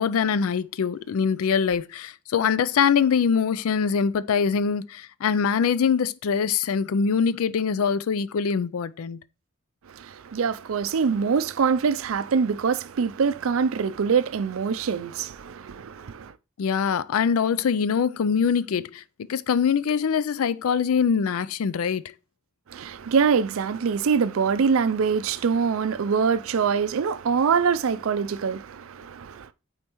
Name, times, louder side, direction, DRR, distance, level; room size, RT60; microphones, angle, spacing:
voice 1, 0.0-9.2 16.6-19.0 19.3-22.1, left 6 dB, 75° left, 0.4 m, -23 dB
voice 2, 9.9-16.3 22.7-29.5, right 6 dB, 70° right, 0.4 m, -24 dB
8.7 x 4.4 x 3.0 m
head